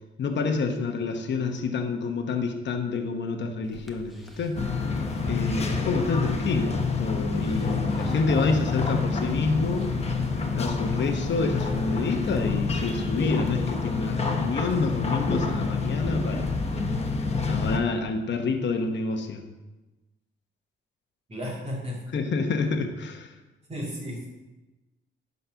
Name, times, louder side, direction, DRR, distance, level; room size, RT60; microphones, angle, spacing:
voice 1, 0.2-4.7 5.3-9.9 10.5-16.8 17.4-19.4 22.1-23.3, left 4 dB, 60° left, 4 dB, 1.0 m, -28 dB
sound 1, 3.6-13.0, equal, ahead, 1.1 m, -46 dB
sound 2, 4.6-17.8, left 4 dB, 30° left, 1.1 m, -27 dB
voice 2, 21.3-22.2 23.7-24.3, equal, 30° right, -3 dB, 2.3 m, -34 dB
10.5 x 4.2 x 5.7 m, 1.1 s
cardioid pair, 115°, 21 cm